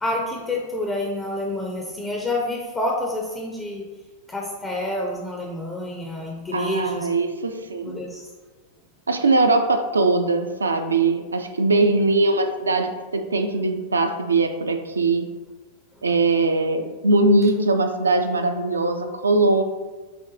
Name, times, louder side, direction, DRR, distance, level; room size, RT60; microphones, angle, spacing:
voice 1, 0.0-3.9 4.3-7.1 7.8-8.3 11.7-12.1, left 1 dB, 15° left, -1 dB, 0.4 m, -28 dB
voice 2, 6.5-8.0 9.1-15.3 16.0-19.6, right 2 dB, 75° right, 6 dB, 0.3 m, -21 dB
5.6 x 2.2 x 2.6 m, 1.3 s
figure-of-eight pair, 90°, 0 cm